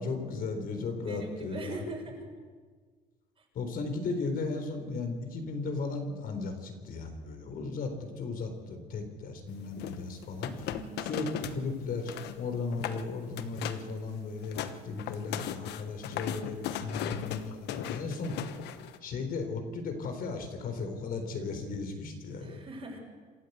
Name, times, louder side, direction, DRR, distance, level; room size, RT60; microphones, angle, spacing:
voice 1, 0.0-1.8 3.5-10.7 11.0-18.4 19.0-22.6, left 3 dB, 60° left, 6 dB, 4.1 m, -36 dB
voice 2, 1.0-2.3 3.4-3.5 10.7-11.1 22.4-23.0, right 2 dB, 35° right, 1 dB, 6.6 m, -41 dB
sound 1, 9.8-11.6 11.9-12.4 12.7-13.0 13.4-13.9 14.3-19.0, left 11 dB, 80° left, 1.2 m, -37 dB
27.0 x 13.5 x 8.2 m, 1.5 s
cardioid pair, 110°, 17 cm